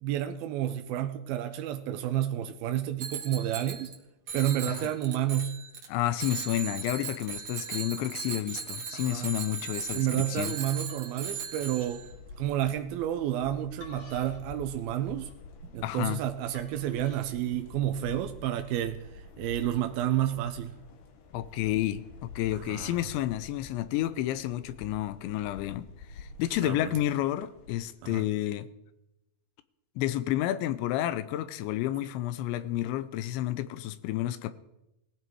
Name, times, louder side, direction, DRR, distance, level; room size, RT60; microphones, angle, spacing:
voice 1, 0.0-3.9 4.3-5.6 8.9-9.3 9.9-12.1 12.4-15.3 15.7-20.7 22.5-23.0 26.6-27.0 28.0-28.2, right 12 dB, 85° right, 2.2 m, -30 dB
Bicycle bell, 3.0-4.0 4.3-5.9 6.2-12.1, right 6 dB, 45° right, 1.8 m, -38 dB
voice 2, 5.9-10.5 15.8-16.2 21.3-22.0 22.4-25.9 26.2-28.7 30.0-34.5, left 13 dB, 85° left, 3.0 m, -30 dB
sound 1, 10.9-12.8 13.4-17.2, left 2 dB, 40° left, 4.0 m, -53 dB
sound 2, 11.6-27.8, left 4 dB, 65° left, 2.2 m, -48 dB
19.0 x 15.5 x 4.7 m
omnidirectional pair, 5.2 m